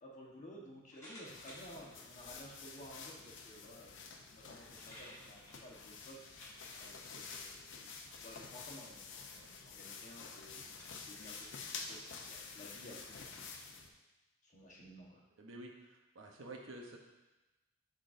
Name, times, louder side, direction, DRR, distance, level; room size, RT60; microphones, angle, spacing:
voice 1, 0.0-6.2 6.8-7.9 8.2-13.4 14.4-15.2, equal, 40° left, -3 dB, 1.2 m, -55 dB
sound 1, 0.9-1.8 2.6-2.7 4.2-4.3 4.5-6.8 7.8-8.1 8.5-8.8 9.5-9.6 10.2-10.3 10.8-11.5, equal, 15° left, 2.1 m, -56 dB
sound 2, 1.3-13.9, left 5 dB, 65° left, 0.6 m, -50 dB
voice 2, 15.4-17.0, right 2 dB, 85° right, 1 dB, 0.9 m, -50 dB
10.5 x 3.8 x 2.6 m, 1.1 s
head